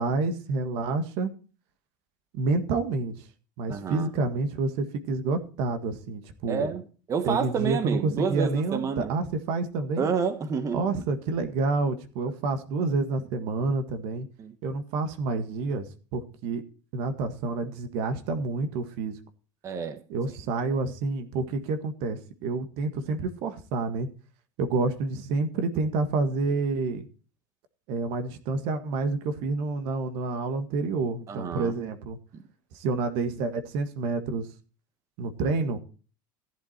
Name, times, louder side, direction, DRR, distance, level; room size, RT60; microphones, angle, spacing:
voice 1, 0.0-1.3 2.3-3.3 3.6-6.7 7.2-10.1 10.7-14.3 14.6-16.6 16.9-19.2 20.1-24.1 24.6-27.1 27.9-32.2 32.7-34.5 35.2-35.8, right 3 dB, 65° right, 1.7 m, -28 dB
voice 2, 3.7-4.1 6.5-6.8 7.1-9.1 10.0-10.8 14.4-14.5 19.6-20.0 31.3-31.7, right 6 dB, 30° right, 1.4 m, -29 dB
14.5 x 8.1 x 4.4 m
supercardioid pair, 120°, 10 cm